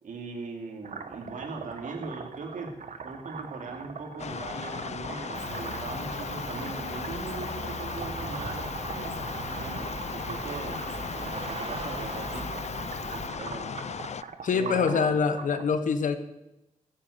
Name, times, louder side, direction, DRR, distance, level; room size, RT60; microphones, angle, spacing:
voice 1, 0.0-2.7 3.0-9.3 9.6-10.8 11.1-13.9 14.5-15.2, right 4 dB, 90° right, 2 dB, 2.7 m, -40 dB
sound 1, 0.8-15.6, right 5 dB, 70° right, 1.2 m, -42 dB
sound 2, 4.2-14.2, left 7 dB, 60° left, 0.5 m, -37 dB
Cricket, 5.3-13.3, right 3 dB, 50° right, 1.7 m, -39 dB
voice 2, 14.4-16.2, left 5 dB, 85° left, 10 dB, 1.2 m, -25 dB
15.5 x 7.8 x 8.1 m, 0.96 s
cardioid pair, 60°, 13 cm